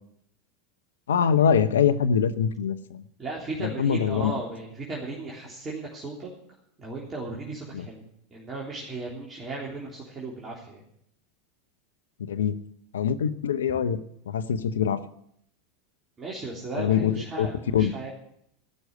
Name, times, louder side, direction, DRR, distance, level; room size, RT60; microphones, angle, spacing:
voice 1, 1.1-3.0 3.6-4.3 7.7-7.8 12.3-12.6 12.9-14.0 14.3-15.0 16.8-17.5 17.7-17.9, left 8 dB, 85° left, 13 dB, 0.8 m, -24 dB
voice 2, 3.2-6.3 6.8-10.8 16.2-18.1, right 3 dB, 25° right, -4 dB, 3.4 m, -36 dB
15.0 x 6.4 x 9.6 m, 0.73 s
hypercardioid pair, 95°, 0 cm